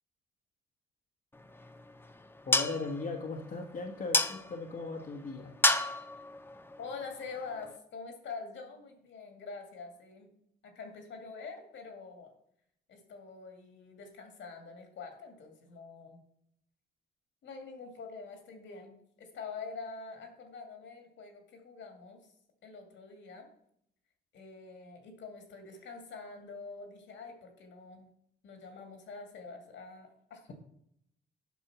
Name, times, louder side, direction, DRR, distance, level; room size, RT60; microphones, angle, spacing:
sound 1, 1.3-7.8, left 2 dB, 10° left, 0.6 m, -33 dB
voice 1, 2.4-5.5, left 3 dB, 45° left, 1 dB, 1.3 m, -38 dB
voice 2, 6.8-10.3 10.6-12.3 12.9-16.2 17.4-22.2 22.6-23.5 24.3-28.1 28.4-30.5, left 4 dB, 70° left, 4 dB, 2.2 m, -45 dB
8.3 x 5.5 x 5.9 m, 0.73 s
cardioid pair, 90°, 20 cm